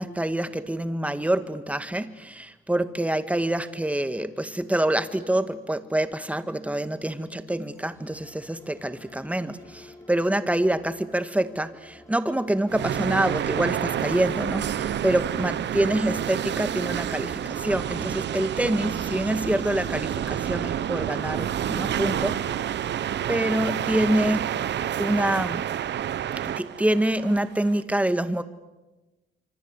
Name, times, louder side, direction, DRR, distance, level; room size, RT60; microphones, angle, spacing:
voice 1, 0.0-22.7 23.3-24.5 25.0-25.6 26.4-28.4, right 1 dB, 5° right, 11 dB, 1.8 m, -26 dB
sound 1, 7.6-25.4, left 2 dB, 15° left, 5.9 m, -50 dB
sound 2, 12.7-27.8, right 10 dB, 65° right, 1.1 m, -29 dB
26.0 x 26.0 x 8.2 m, 1.1 s
cardioid pair, 90°, 20 cm